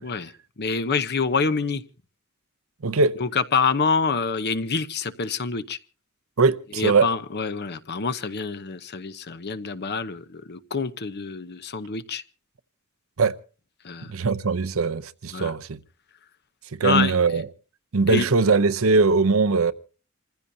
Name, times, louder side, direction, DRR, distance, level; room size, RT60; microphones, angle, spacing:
voice 1, 0.0-1.8 3.2-5.8 6.7-12.2 13.8-14.1 15.3-15.5 16.8-17.1 18.1-18.2, left 5 dB, 50° left, 0.9 m, -26 dB
voice 2, 2.8-3.1 6.4-7.1 13.2-13.4 14.1-15.8 16.7-17.5 17.9-19.7, right 4 dB, 75° right, 0.7 m, -21 dB
28.0 x 15.0 x 2.7 m
head